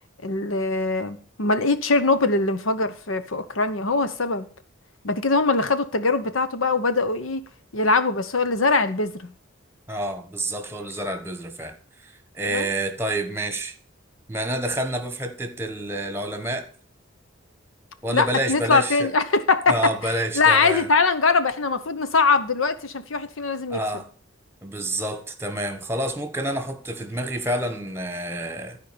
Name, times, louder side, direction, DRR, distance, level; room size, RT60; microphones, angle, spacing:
voice 1, 0.2-4.5 5.0-7.4 7.7-9.3 12.5-12.7 18.1-19.8 20.3-23.8, left 3 dB, 90° left, 1.0 m, -22 dB
voice 2, 9.9-11.8 12.0-13.7 14.3-16.7 18.0-19.1 19.7-20.9 23.7-24.1 24.6-28.8, right 1 dB, 10° right, 1.2 m, -28 dB
12.5 x 5.0 x 6.8 m
head